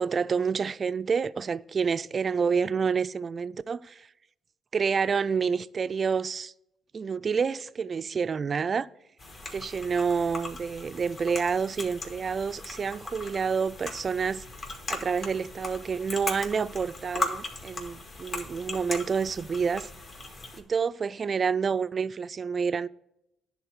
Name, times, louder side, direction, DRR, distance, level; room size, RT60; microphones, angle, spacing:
voice 1, 0.0-4.1 4.7-6.5 6.9-8.9 9.5-14.4 14.9-19.9 20.6-22.9, right 6 dB, 40° right, 0.3 m, -28 dB
sound 1, 9.2-20.6, left 2 dB, 45° left, 1.9 m, -38 dB
10.0 x 3.9 x 6.2 m
cardioid pair, 90°, 0 cm